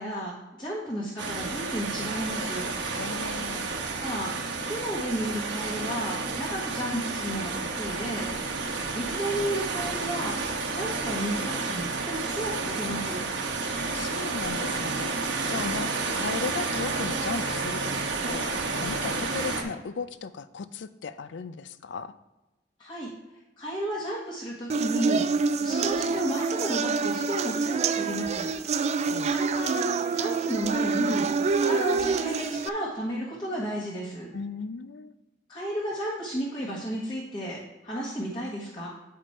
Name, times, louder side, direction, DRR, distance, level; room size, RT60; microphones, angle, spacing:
voice 1, 0.0-2.7 4.0-4.3 4.6-8.3 8.6-10.4 10.7-13.2 22.8-23.1 23.6-28.5 28.8-29.0 29.2-31.3 31.6-34.3 35.5-37.6 37.8-38.9, right 1 dB, 25° left, -6 dB, 1.4 m, -33 dB
sound 1, 1.2-19.6, right 3 dB, 80° right, 1.1 m, -31 dB
voice 2, 3.0-3.7 13.9-15.1 15.5-15.9 16.2-22.1 29.0-29.4 34.3-35.1, left 5 dB, 75° left, 14 dB, 0.4 m, -36 dB
sound 2, 24.7-32.7, right 4 dB, 35° right, 0.3 m, -26 dB
8.7 x 5.1 x 4.3 m, 1.1 s
head